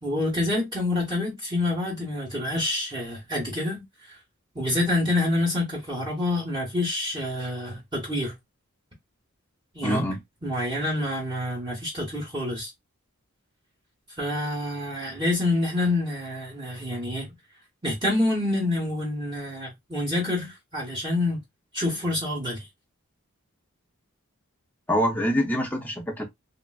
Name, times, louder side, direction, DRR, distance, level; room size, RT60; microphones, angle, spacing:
voice 1, 0.0-3.8 4.5-8.4 9.7-10.0 10.4-12.7 14.2-17.3 17.8-21.4 21.7-22.6, left 2 dB, 20° right, 0.9 m, -27 dB
voice 2, 9.8-10.2 24.9-26.2, equal, 10° left, 0.5 m, -25 dB
3.1 x 2.4 x 2.2 m
head